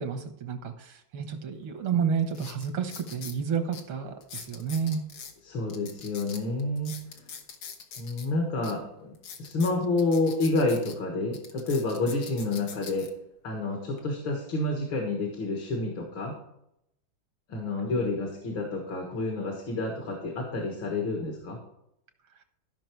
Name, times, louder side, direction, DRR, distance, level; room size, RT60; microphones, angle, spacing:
voice 1, 0.0-5.0, right 7 dB, 85° right, 7 dB, 2.2 m, -30 dB
sound 1, 1.6-1.7 2.3-3.4 3.7-3.8 4.2-5.3 5.7-8.3 8.6-8.7 9.1-10.9 11.3-13.1 13.7-14.0, left 6 dB, 85° left, 2.1 m, -43 dB
voice 2, 5.4-7.0 8.0-13.1 13.4-16.4 17.5-21.6, left 2 dB, 70° left, 1 dB, 2.4 m, -29 dB
14.0 x 5.9 x 4.6 m, 0.78 s
omnidirectional pair, 2.2 m